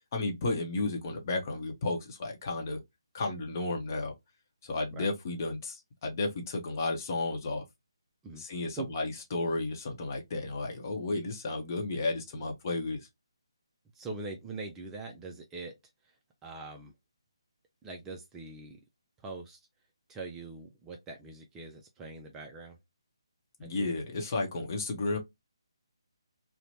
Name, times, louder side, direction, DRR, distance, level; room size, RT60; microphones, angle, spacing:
voice 1, 0.1-2.8 3.1-4.1 4.6-7.6 8.4-13.1 23.6-25.2, left 2 dB, 40° left, 0.8 m, -33 dB
voice 2, 13.9-15.7 16.0-16.2 16.4-16.9 17.8-18.8 19.2-19.6 20.1-22.8 23.6-23.9, right 3 dB, 10° right, 0.3 m, -42 dB
2.9 x 2.1 x 2.6 m
figure-of-eight pair, 150°, 3 cm